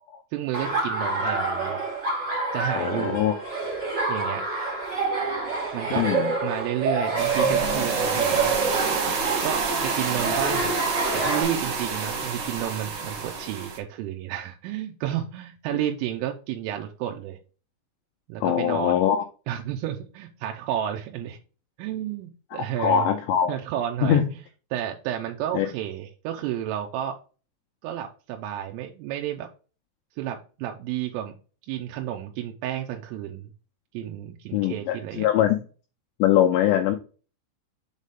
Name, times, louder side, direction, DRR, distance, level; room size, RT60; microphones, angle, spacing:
voice 1, 0.3-1.8 2.5-3.3 4.1-4.5 5.7-6.1 6.4-8.5 9.4-10.7 11.1-17.4 18.3-19.0 19.5-21.4 21.8-23.1 23.5-24.2 24.7-27.2 27.8-29.5 30.2-31.4 31.7-33.5 34.0-35.3, right 11 dB, 90° right, 2 dB, 3.3 m, -31 dB
Laughter, 0.5-11.4, right 3 dB, 55° right, 1.2 m, -27 dB
voice 2, 2.7-3.3 5.9-6.3 18.4-19.2 22.5-23.5 24.0-24.3 25.5-25.7 34.5-35.6 36.2-37.0, left 10 dB, 85° left, 3 dB, 2.5 m, -22 dB
sound 1, 7.2-13.8, right 4 dB, 70° right, 1.9 m, -28 dB
7.4 x 4.1 x 3.5 m, 0.36 s
omnidirectional pair, 5.7 m